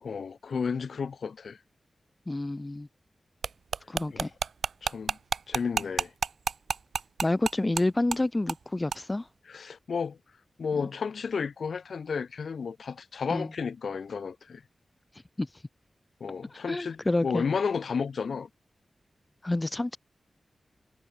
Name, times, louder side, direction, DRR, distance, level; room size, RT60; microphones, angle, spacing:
voice 1, 0.0-1.6 4.1-4.3 4.8-5.2 5.5-6.1 9.5-10.2 10.6-14.6 16.2-18.5, left 5 dB, 75° left, 0.9 m, -32 dB
voice 2, 2.3-2.9 3.9-4.3 7.2-9.3 10.8-10.9 13.3-13.5 15.4-15.5 16.5-17.4 19.4-20.0, left 2 dB, 20° left, 0.5 m, -28 dB
sound 1, 3.4-7.8 8.1-8.2 8.5-8.6 8.9-9.0, right 5 dB, 75° right, 0.3 m, -29 dB
wide cardioid pair, 150°, 0 cm